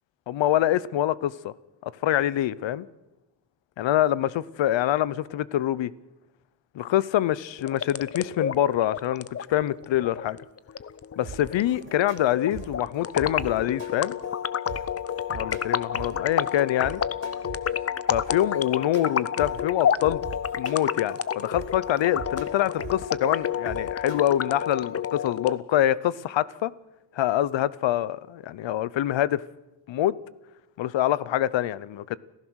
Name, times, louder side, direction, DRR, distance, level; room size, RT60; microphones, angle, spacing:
voice 1, 0.3-1.5 1.8-2.9 3.8-5.9 6.7-10.4 11.2-14.2 15.3-17.0 18.1-20.2 20.6-26.7 27.1-29.4 29.9-30.2 30.8-32.2, left 12 dB, 80° left, 0.8 m, -25 dB
sound 1, 7.6-25.6, left 8 dB, 35° left, 0.6 m, -30 dB
sound 2, 11.2-24.2, right 5 dB, 80° right, 3.2 m, -43 dB
29.0 x 15.0 x 6.4 m
wide cardioid pair, 140°, 44 cm